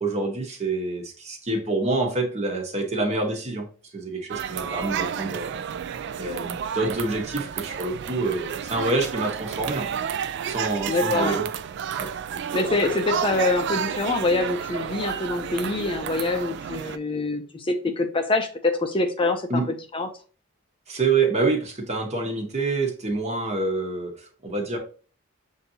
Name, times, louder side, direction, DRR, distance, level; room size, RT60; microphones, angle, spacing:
voice 1, 0.0-3.7 3.9-5.5 6.2-9.9 10.5-11.5 12.0-12.8 19.5-19.7 20.9-24.8, right 3 dB, 35° right, 3 dB, 1.0 m, -27 dB
sound 1, 4.3-17.0, right 8 dB, 60° right, 0.3 m, -31 dB
voice 2, 10.9-11.4 12.5-19.5 19.9-20.1, left 3 dB, 25° left, 5 dB, 0.5 m, -25 dB
6.6 x 2.7 x 2.7 m, 0.38 s
head